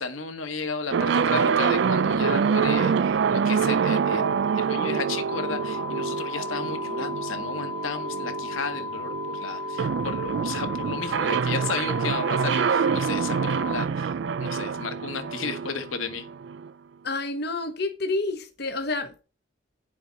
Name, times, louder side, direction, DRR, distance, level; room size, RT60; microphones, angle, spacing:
voice 1, 0.0-16.3, left 4 dB, 85° left, 1.5 m, -33 dB
sound 1, 0.9-16.7, right 6 dB, 60° right, 0.3 m, -26 dB
sound 2, 5.3-13.9, left 4 dB, 15° left, 0.5 m, -35 dB
voice 2, 17.0-19.2, left 2 dB, 55° left, 1.0 m, -29 dB
10.0 x 7.0 x 4.0 m
head